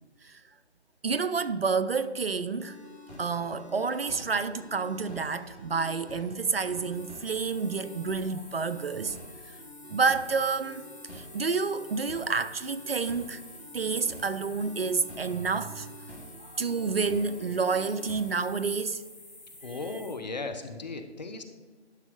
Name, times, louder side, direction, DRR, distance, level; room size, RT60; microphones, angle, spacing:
voice 1, 1.0-2.8 3.2-9.2 9.9-10.8 11.1-13.4 13.7-15.9 16.5-19.0 19.6-19.7, right 5 dB, 60° right, 0.5 m, -29 dB
sound 1, 2.6-18.6, left 1 dB, 75° left, 2.2 m, -48 dB
sound 2, 6.9-20.1, left 2 dB, ahead, 1.7 m, -50 dB
voice 2, 19.6-21.4, left 3 dB, 40° left, 0.8 m, -36 dB
11.5 x 5.9 x 3.9 m
figure-of-eight pair, 150°, 34 cm